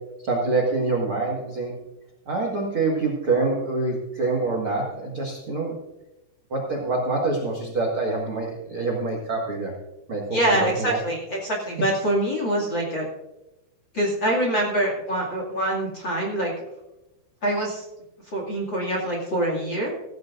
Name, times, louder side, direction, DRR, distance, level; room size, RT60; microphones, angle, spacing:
voice 1, 0.2-1.7 2.3-5.8 6.5-9.7 10.1-11.0, right 3 dB, 85° right, -1 dB, 1.1 m, -26 dB
voice 2, 10.3-13.1 13.9-16.5 17.4-17.9 18.2-19.9, right 1 dB, 40° left, -2 dB, 1.8 m, -25 dB
16.5 x 15.0 x 2.5 m, 0.96 s
omnidirectional pair, 5.5 m